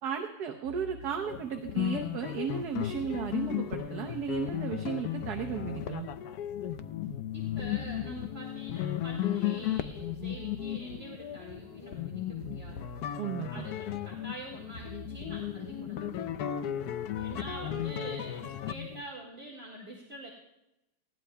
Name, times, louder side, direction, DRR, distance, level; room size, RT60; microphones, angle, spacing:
voice 1, 0.0-6.1 13.2-13.6, right 7 dB, 65° right, 3 dB, 1.3 m, -35 dB
sound 1, 0.6-18.8, equal, 85° left, 6.9 m, -49 dB
sound 2, 1.3-19.0, left 11 dB, 70° left, 1.0 m, -35 dB
voice 2, 7.3-12.8 13.5-16.3 17.2-20.3, right 1 dB, 35° right, -3 dB, 2.1 m, -45 dB
19.5 x 16.0 x 2.3 m, 0.91 s
omnidirectional pair, 1.9 m